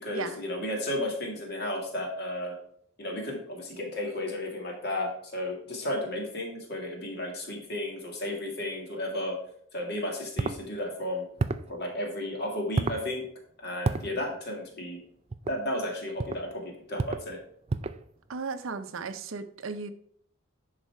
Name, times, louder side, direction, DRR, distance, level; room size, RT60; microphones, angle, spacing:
voice 1, 0.0-2.6 3.0-9.4 9.7-11.3 11.7-13.2 13.6-15.0 15.5-17.4, left 1 dB, 50° left, 2.2 m, -33 dB
sound 1, 10.4-10.6 11.4-11.7 12.8-13.0 13.8-14.1 15.3-15.6 16.2-16.4 17.0-17.3 17.7-18.0, right 3 dB, 30° right, 0.3 m, -29 dB
voice 2, 18.3-19.9, right 4 dB, 65° right, 0.6 m, -35 dB
10.5 x 4.2 x 4.7 m
head